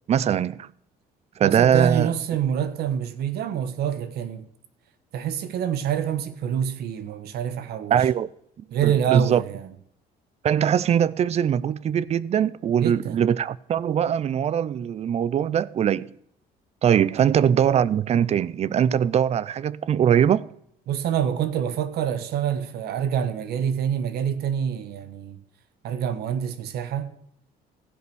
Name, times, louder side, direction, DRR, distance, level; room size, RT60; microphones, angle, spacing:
voice 1, 0.1-0.7 1.4-2.1 7.9-8.3 8.8-9.4 10.4-16.1 16.8-20.5, right 9 dB, 40° right, 0.4 m, -21 dB
voice 2, 1.4-4.5 5.1-8.0 8.7-9.7 12.8-13.2 17.1-17.2 20.9-25.4 25.8-27.2, right 9 dB, 70° right, 1.1 m, -26 dB
15.5 x 5.3 x 6.1 m
cardioid pair, 110°, 17 cm